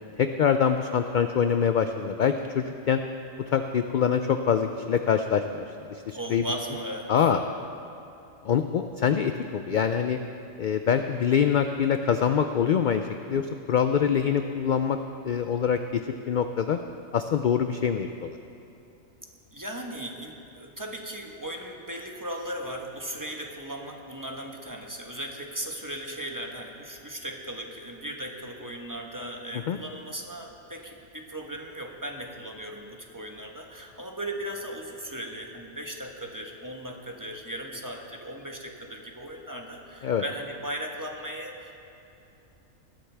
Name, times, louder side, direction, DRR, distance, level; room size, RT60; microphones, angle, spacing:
voice 1, 0.2-3.0 3.5-5.6 5.9-6.5 7.1-7.4 8.4-10.2 10.6-13.0 13.3-15.0 15.2-16.8 17.1-18.4 29.7-29.8 40.0-40.2, left 7 dB, 65° left, 7 dB, 0.5 m, -24 dB
voice 2, 6.1-7.3 19.5-41.8, right 1 dB, 15° right, 1 dB, 1.1 m, -37 dB
19.5 x 13.0 x 3.4 m, 2.8 s
omnidirectional pair, 1.3 m